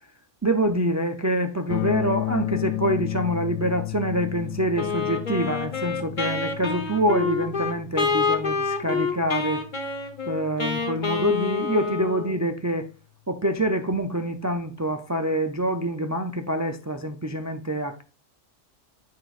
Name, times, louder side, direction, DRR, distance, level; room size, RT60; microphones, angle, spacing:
voice 1, 0.4-9.6 10.3-12.9 13.3-18.0, right 1 dB, 25° right, 0.4 m, -26 dB
sound 1, 1.7-11.6, left 18 dB, 65° left, 0.9 m, -34 dB
Wind instrument woodwind instrument, 4.8-12.4, left 5 dB, 40° left, 1.1 m, -27 dB
8.3 x 6.2 x 2.5 m
omnidirectional pair, 1.3 m